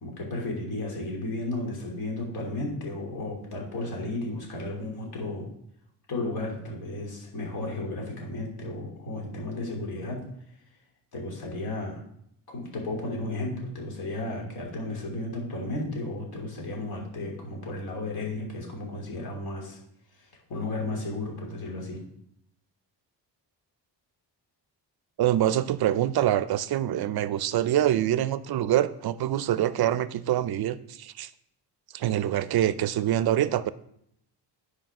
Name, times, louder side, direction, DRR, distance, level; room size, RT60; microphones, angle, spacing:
voice 1, 0.0-5.5 6.1-10.2 11.1-12.0 12.5-19.8 20.2-22.0, left 2 dB, 60° left, 3.4 m, -34 dB
voice 2, 25.2-31.3 31.9-33.7, right 12 dB, 60° right, 0.5 m, -25 dB
10.0 x 5.0 x 6.0 m
cardioid pair, 130°, 42 cm